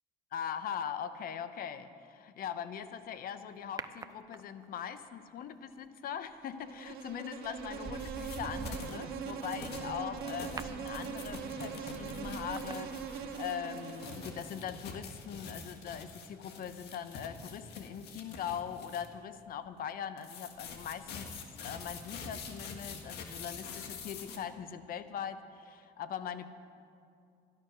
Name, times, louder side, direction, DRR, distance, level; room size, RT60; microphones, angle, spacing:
voice 1, 0.3-21.3 21.5-26.5, left 8 dB, 60° left, 11 dB, 0.8 m, -41 dB
sound 1, 3.8-4.8 6.7-7.0 7.4-13.6 13.9-14.0, right 4 dB, 20° right, 0.5 m, -46 dB
Insect, 6.5-14.7, right 6 dB, 70° right, 1.6 m, -42 dB
sound 2, 8.0-9.0 9.4-19.1 20.2-24.4, left 5 dB, 75° left, 1.7 m, -46 dB
13.5 x 12.0 x 6.1 m, 2.4 s
cardioid pair, 110°, 17 cm